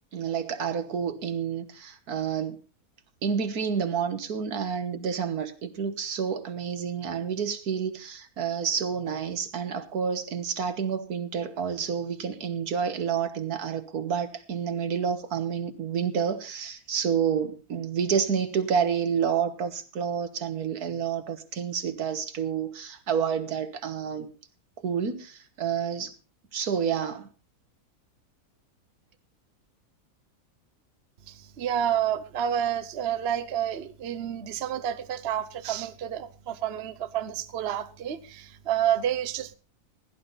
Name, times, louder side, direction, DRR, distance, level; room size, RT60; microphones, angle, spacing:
voice 1, 0.1-2.6 3.2-24.3 24.8-26.1 26.5-27.3, right 7 dB, 80° right, 1.8 m, -29 dB
voice 2, 31.3-39.5, right 10 dB, 50° right, 1.0 m, -29 dB
16.0 x 11.0 x 4.1 m
omnidirectional pair, 1.6 m